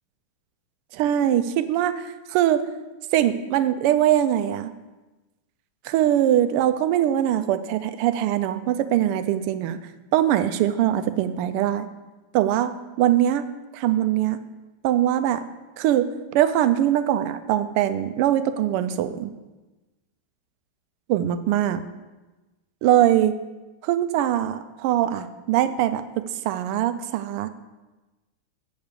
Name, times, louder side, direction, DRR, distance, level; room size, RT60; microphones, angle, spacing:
voice 1, 0.9-2.6 3.1-4.7 5.8-9.8 10.1-11.9 12.3-12.7 13.0-13.4 13.7-14.4 14.8-15.4 15.8-19.3 21.1-21.8 22.8-23.3 23.8-27.5, right 11 dB, 85° right, 11 dB, 1.5 m, -22 dB
8.0 x 4.8 x 6.7 m, 1.1 s
omnidirectional pair, 2.4 m